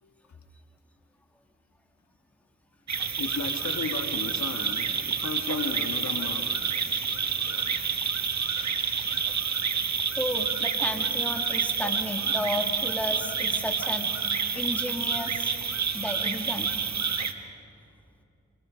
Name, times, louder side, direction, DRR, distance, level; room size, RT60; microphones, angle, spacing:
voice 1, 0.0-0.4 3.2-6.6, left 5 dB, 70° left, 5 dB, 1.9 m, -35 dB
sound 1, 2.9-17.3, right 6 dB, 65° right, 1.6 m, -28 dB
voice 2, 9.8-15.5 15.9-17.3, left 1 dB, 5° left, 3 dB, 2.8 m, -33 dB
27.5 x 26.5 x 5.3 m, 2.7 s
cardioid pair, 45°, 29 cm